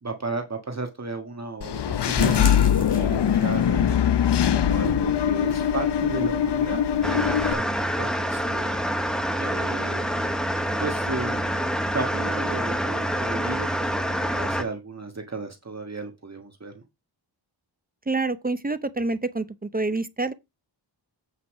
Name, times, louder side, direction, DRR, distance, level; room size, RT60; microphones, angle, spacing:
voice 1, 0.0-4.0 4.5-8.8 9.4-10.1 10.8-11.4 11.9-16.8, right 3 dB, 35° right, 1.6 m, -34 dB
Engine / Mechanisms, 1.6-7.5, left 9 dB, 70° left, 0.7 m, -22 dB
sound 1, 2.2-3.7 4.0-4.1 4.5-4.6 5.0-5.1, left 3 dB, 20° left, 2.9 m, -33 dB
sound 2, 7.0-14.6, equal, ahead, 1.1 m, -26 dB
voice 2, 18.1-20.3, right 3 dB, 20° right, 0.7 m, -27 dB
8.3 x 5.5 x 4.9 m
wide cardioid pair, 125°, 43 cm